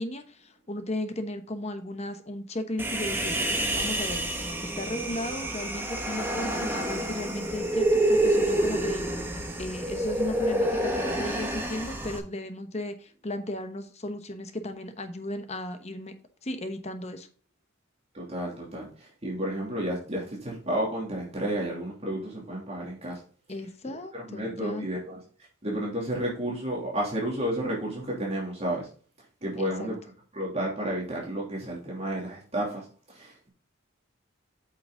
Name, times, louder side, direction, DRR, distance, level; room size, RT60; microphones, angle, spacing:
voice 1, 0.0-3.4 3.8-4.2 4.8-9.1 9.6-16.1 16.4-17.3 23.5-24.9 29.6-29.9, left 1 dB, 30° left, 8 dB, 1.0 m, -35 dB
Human voice, 2.8-12.2, right 1 dB, 10° right, 1.3 m, -28 dB
voice 2, 18.1-23.2 23.8-25.2 25.6-28.9 29.4-30.0 30.3-33.5, right 1 dB, 30° right, -3 dB, 2.8 m, -32 dB
8.7 x 5.9 x 3.8 m, 0.41 s
head